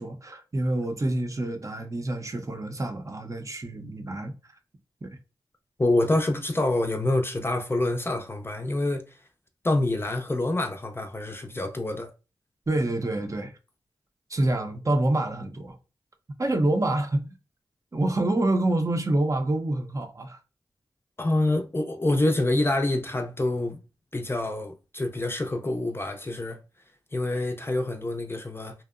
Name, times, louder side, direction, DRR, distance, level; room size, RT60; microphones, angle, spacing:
voice 1, 0.0-4.3 5.0-5.1 12.7-13.5 14.3-15.8 16.4-17.3 17.9-20.4, right 1 dB, 35° right, 0.6 m, -27 dB
voice 2, 5.8-9.0 9.6-12.1 21.2-23.8 24.1-26.6 27.1-28.7, left 2 dB, 25° left, 0.5 m, -26 dB
2.7 x 2.0 x 2.3 m
cardioid pair, 50°, 9 cm